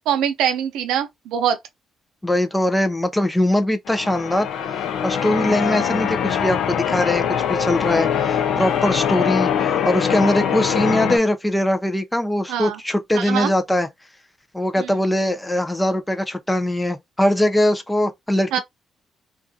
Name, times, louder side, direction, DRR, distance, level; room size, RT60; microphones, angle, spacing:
voice 1, 0.1-1.6 12.5-12.8 13.1-13.5 14.8-14.9 18.5-18.6, right 9 dB, 90° right, 0.5 m, -23 dB
voice 2, 2.2-7.2 7.5-13.9 14.5-18.6, left 1 dB, 10° left, 0.4 m, -21 dB
Church bell, 3.9-11.2, left 8 dB, 75° left, 0.4 m, -22 dB
2.3 x 2.3 x 2.6 m
cardioid pair, 90°, 0 cm